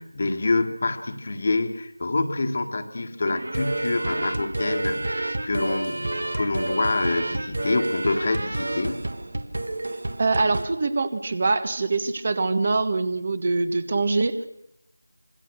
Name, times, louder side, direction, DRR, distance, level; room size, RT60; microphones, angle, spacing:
voice 1, 0.0-9.0, left 3 dB, 35° left, 7 dB, 1.8 m, -26 dB
Funny Melody - Clown Circus, 3.2-10.6, right 2 dB, 60° right, 1.6 m, -29 dB
voice 2, 10.2-14.5, right 3 dB, 30° right, 13 dB, 1.3 m, -24 dB
26.0 x 22.0 x 6.4 m, 0.78 s
figure-of-eight pair, 170°, 0 cm